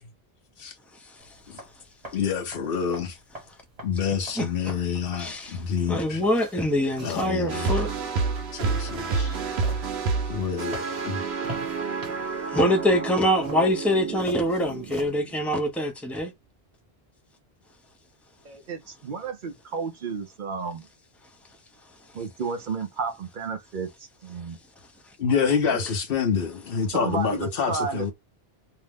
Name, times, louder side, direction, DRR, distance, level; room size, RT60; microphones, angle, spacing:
sound 1, 1.2-15.1, right 1 dB, 40° right, 1.3 m, -45 dB
voice 1, 2.1-3.2 3.8-6.2 7.0-7.7 8.5-9.4 10.3-11.2 25.2-28.1, left 6 dB, 65° left, 0.9 m, -27 dB
voice 2, 5.2-5.6 5.9-7.9 12.5-16.3, equal, ahead, 0.5 m, -24 dB
sound 2, 7.5-15.7, right 4 dB, 85° right, 1.0 m, -30 dB
voice 3, 18.4-20.9 22.1-23.9 24.2-24.6 26.9-28.1, right 5 dB, 55° right, 0.7 m, -32 dB
2.7 x 2.0 x 3.4 m
omnidirectional pair, 1.0 m